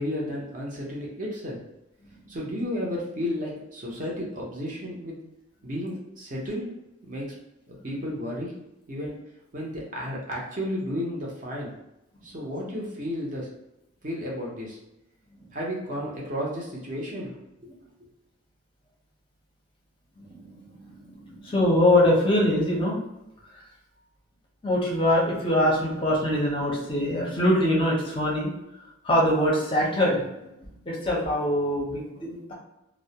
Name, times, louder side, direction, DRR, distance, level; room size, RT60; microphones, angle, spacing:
voice 1, 0.0-1.6 2.3-5.2 5.6-6.7 7.1-7.3 7.7-8.5 8.9-9.2 9.5-11.7 12.2-13.5 14.0-14.8 15.5-17.3, equal, 40° right, -3 dB, 0.6 m, -32 dB
voice 2, 20.2-23.0 24.6-28.5 29.0-30.5 30.9-32.5, left 1 dB, 25° left, -3 dB, 0.5 m, -23 dB
2.3 x 2.0 x 2.7 m, 0.89 s
head